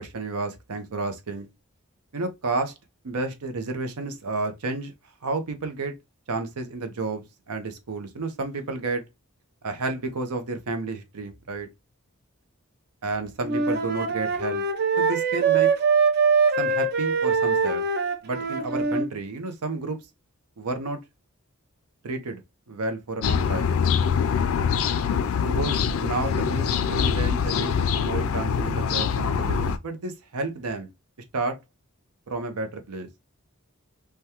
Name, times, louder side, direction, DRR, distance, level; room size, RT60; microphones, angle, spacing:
voice 1, 0.0-1.5 2.1-2.7 3.0-4.9 5.2-5.9 6.3-9.0 9.6-11.7 13.0-14.6 15.0-15.7 16.6-17.8 18.2-20.0 20.6-21.0 22.0-22.4 22.7-23.7 25.4-27.7 28.0-30.9 31.3-31.6 32.3-33.1, right 3 dB, 90° right, 0.6 m, -31 dB
Wind instrument woodwind instrument, 13.4-19.1, right 5 dB, 45° right, 0.5 m, -23 dB
sound 1, 23.2-29.8, left 6 dB, 65° left, 0.3 m, -24 dB
3.4 x 2.2 x 2.8 m
head